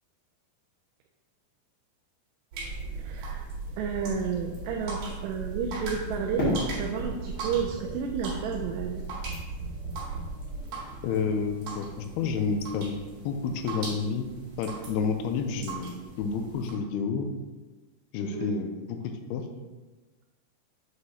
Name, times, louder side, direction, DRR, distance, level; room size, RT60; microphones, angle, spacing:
sound 1, 2.5-16.7, right 3 dB, 55° right, 3.2 m, -38 dB
voice 1, 3.0-3.4 3.8-9.0 18.2-18.5, right 6 dB, 85° right, 1 dB, 2.6 m, -31 dB
Fireworks, 6.4-9.4, left 1 dB, 45° left, 1.2 m, -33 dB
voice 2, 11.0-13.0 13.3-14.3 14.6-17.3 18.1-19.5, left 5 dB, 85° left, 5 dB, 2.4 m, -30 dB
7.8 x 4.9 x 2.8 m, 1.2 s
omnidirectional pair, 4.9 m